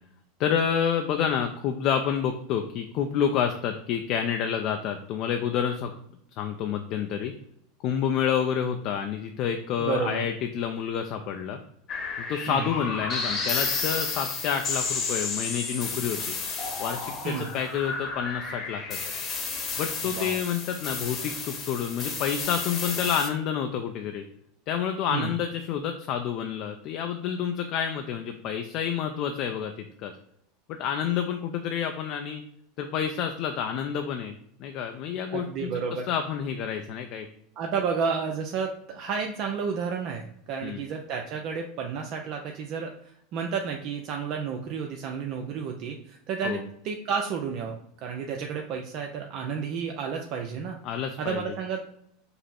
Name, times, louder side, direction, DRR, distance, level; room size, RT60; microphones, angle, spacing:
voice 1, 0.4-5.9 6.4-7.3 7.8-11.6 12.3-16.3 16.8-19.0 19.8-24.2 24.7-29.7 30.0-30.1 30.7-32.4 32.8-34.3 34.6-35.7 36.1-37.3 40.6-40.8 46.4-46.6 50.8-51.4, left 8 dB, 55° left, 5 dB, 0.4 m, -29 dB
voice 2, 9.8-10.3 12.5-12.8 17.2-17.5 20.1-20.4 25.1-25.3 35.3-36.1 37.6-50.8 51.2-51.8, right 6 dB, 55° right, 2 dB, 0.5 m, -31 dB
sound 1, 11.9-23.3, left 4 dB, 35° left, 1.0 m, -32 dB
5.3 x 2.0 x 4.3 m, 0.72 s
hypercardioid pair, 105°, 0 cm